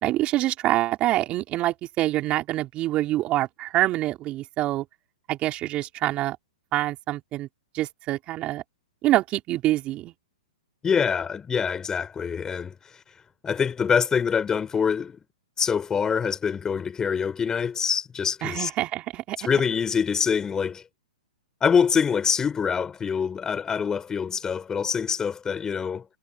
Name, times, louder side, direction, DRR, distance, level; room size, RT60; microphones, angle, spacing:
voice 1, 0.0-4.8 5.3-6.4 6.7-7.5 7.7-8.6 9.0-10.1 18.4-19.4, right 15 dB, 30° right, 4.3 m, -25 dB
voice 2, 10.8-12.7 13.4-15.2 15.6-18.7 19.4-20.8 21.6-26.0, left 6 dB, 15° left, 4.5 m, -25 dB
hypercardioid pair, 125°, 4 cm